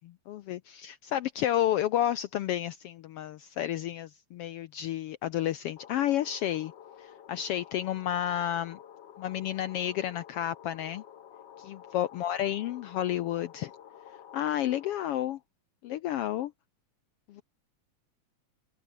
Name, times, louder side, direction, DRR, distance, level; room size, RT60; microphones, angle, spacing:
voice 1, 0.3-6.7 7.0-8.8 9.2-11.0 11.6-13.7 14.3-15.4 15.8-16.5 17.3-17.4, left 12 dB, 75° left, 1.4 m, -31 dB
sound 1, 5.8-15.2, left 9 dB, 60° left, 1.2 m, -51 dB
omnidirectional pair, 3.3 m